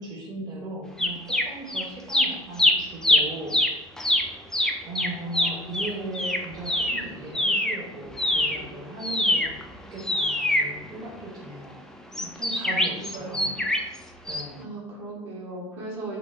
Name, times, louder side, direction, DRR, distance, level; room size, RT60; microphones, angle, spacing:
voice 1, 0.0-3.6 4.8-11.8 12.2-13.6 14.3-14.7, right 2 dB, 25° right, -3 dB, 0.9 m, -38 dB
sound 1, 1.0-7.8 8.1-11.4 12.1-14.0 14.3-14.4, left 1 dB, 5° left, 0.3 m, -24 dB
voice 2, 13.0-13.6 14.6-16.2, right 2 dB, 60° right, -4 dB, 1.5 m, -37 dB
4.0 x 3.0 x 3.1 m, 1.1 s
figure-of-eight pair, 75°, 16 cm